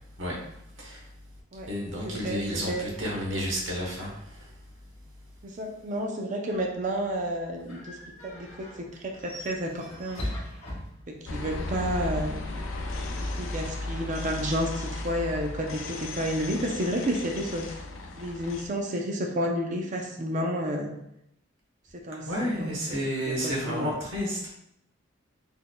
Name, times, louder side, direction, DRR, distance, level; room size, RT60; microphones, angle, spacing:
voice 1, 0.2-1.1 1.7-4.6 22.3-24.4, equal, 70° right, -2 dB, 1.2 m, -31 dB
voice 2, 2.0-2.8 5.4-8.0 8.2-10.3 11.1-12.4 13.4-17.8 18.2-20.9 22.0-23.0 23.3-23.9, equal, 40° right, 1 dB, 0.5 m, -31 dB
sound 1, 6.5-11.5, left 1 dB, 30° left, 1.2 m, -40 dB
sound 2, 11.3-18.7, left 2 dB, 90° left, 0.5 m, -35 dB
4.1 x 3.5 x 2.2 m, 0.77 s
head